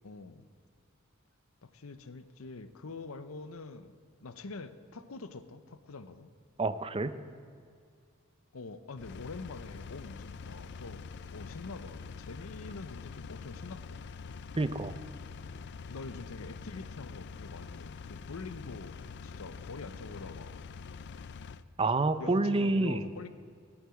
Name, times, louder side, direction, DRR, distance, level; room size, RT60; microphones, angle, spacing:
voice 1, 0.0-0.5 1.6-6.3 8.5-11.0 11.3-14.0 15.9-20.6 22.2-23.3, left 3 dB, 75° left, 12 dB, 0.7 m, -45 dB
voice 2, 6.6-7.2 14.6-14.9 21.8-23.1, right 2 dB, 25° right, 12 dB, 0.6 m, -28 dB
Engine, 9.0-21.6, left 5 dB, 55° left, 0.4 m, -45 dB
15.5 x 8.8 x 7.7 m, 2.2 s
head